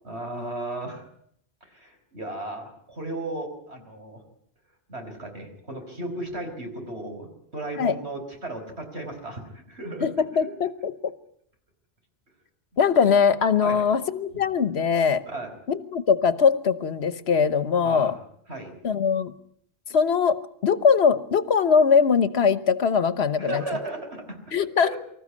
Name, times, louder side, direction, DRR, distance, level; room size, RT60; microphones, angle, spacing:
voice 1, 0.0-1.1 1.6-4.2 4.9-10.1 10.4-10.5 13.6-13.8 14.3-14.4 15.2-15.5 17.8-18.2 18.5-18.8 23.4-24.4 24.8-25.0, right 2 dB, 85° right, 4 dB, 5.2 m, -35 dB
voice 2, 10.0-11.1 12.8-15.2 15.7-18.1 18.8-19.3 19.9-23.6 24.5-24.9, left 6 dB, 80° left, 14 dB, 1.3 m, -21 dB
25.0 x 14.5 x 9.7 m, 0.69 s
omnidirectional pair, 1.1 m